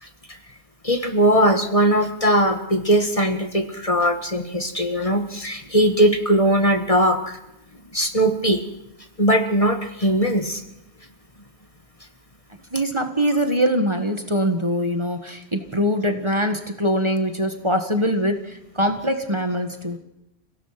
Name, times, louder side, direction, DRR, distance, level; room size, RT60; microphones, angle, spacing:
voice 1, 0.0-0.4 0.8-7.4 7.9-8.6 9.2-10.6, right 1 dB, 30° left, 5 dB, 1.7 m, -20 dB
voice 2, 12.7-20.0, equal, 25° right, 6 dB, 1.7 m, -23 dB
30.0 x 17.0 x 6.0 m, 0.87 s
omnidirectional pair, 1.1 m